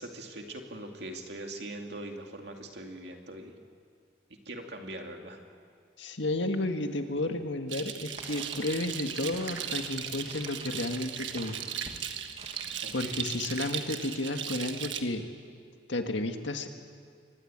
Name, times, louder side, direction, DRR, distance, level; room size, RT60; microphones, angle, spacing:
voice 1, 0.0-3.6 4.5-5.4 12.8-13.1, right 1 dB, 65° right, 3 dB, 2.5 m, -42 dB
voice 2, 6.0-11.6 12.9-15.2 15.9-16.7, left 2 dB, 80° left, 6 dB, 1.8 m, -32 dB
sound 1, 7.7-15.0, right 9 dB, 85° right, 1.5 m, -37 dB
sound 2, 8.1-13.8, right 2 dB, 35° right, 2.1 m, -50 dB
24.0 x 19.5 x 8.8 m, 2.1 s
head